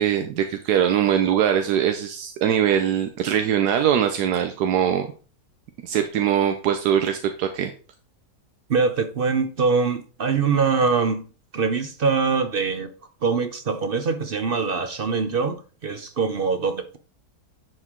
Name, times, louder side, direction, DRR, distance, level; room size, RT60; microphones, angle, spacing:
voice 1, 0.0-5.1 5.8-7.7, right 9 dB, 85° right, 1.3 m, -22 dB
voice 2, 8.7-11.2 11.5-12.9 13.2-17.0, right 5 dB, 55° right, 0.6 m, -23 dB
10.5 x 4.6 x 3.7 m
omnidirectional pair, 1.7 m